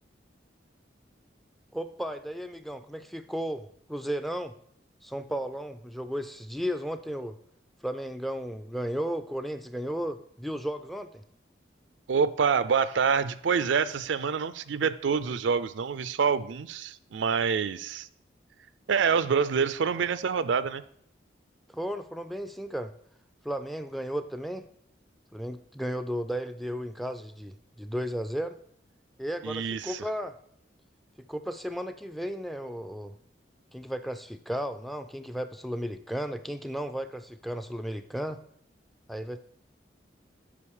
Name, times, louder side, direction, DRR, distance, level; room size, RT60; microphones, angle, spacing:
voice 1, 1.7-4.5 5.0-7.4 7.8-11.2 21.7-22.9 23.4-24.7 25.3-28.6 29.2-30.3 31.3-33.2 33.7-38.4 39.1-39.4, equal, ahead, 9 dB, 0.3 m, -34 dB
voice 2, 12.1-18.1 18.9-20.8 29.4-30.0, right 6 dB, 80° right, 14 dB, 0.4 m, -26 dB
8.5 x 5.2 x 4.8 m, 0.68 s
head